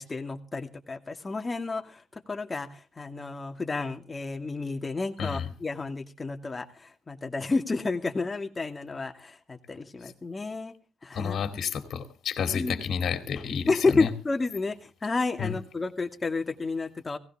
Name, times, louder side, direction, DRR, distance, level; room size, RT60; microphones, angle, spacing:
voice 1, 0.0-2.7 3.0-10.7 11.0-11.4 12.5-12.8 13.7-17.2, left 3 dB, 30° left, 5 dB, 2.3 m, -31 dB
voice 2, 11.1-14.1 15.4-15.6, left 7 dB, 65° left, 7 dB, 2.4 m, -30 dB
17.5 x 16.5 x 3.6 m, 0.36 s
supercardioid pair, 55°, 0 cm